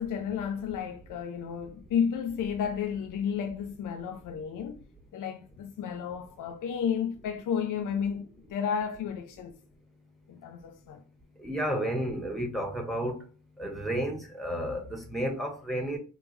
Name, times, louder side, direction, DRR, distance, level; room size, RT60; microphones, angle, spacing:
voice 1, 0.0-4.8 5.1-9.6 10.3-11.0, left 7 dB, 65° left, 0.6 m, -32 dB
voice 2, 11.4-13.2 13.6-16.0, right 1 dB, ahead, 1.5 m, -31 dB
3.5 x 2.5 x 3.2 m
supercardioid pair, 50°, 34 cm